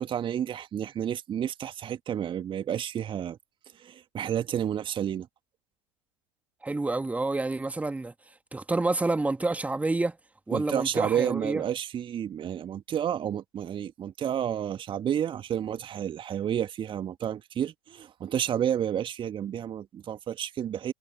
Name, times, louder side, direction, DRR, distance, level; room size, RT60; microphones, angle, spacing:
voice 1, 0.0-3.4 3.8-5.3 10.5-20.9, right 9 dB, 25° right, 2.1 m, -30 dB
voice 2, 6.6-8.1 8.5-10.2 10.5-11.6, right 2 dB, 5° right, 2.4 m, -28 dB
figure-of-eight pair, 90°, 20 cm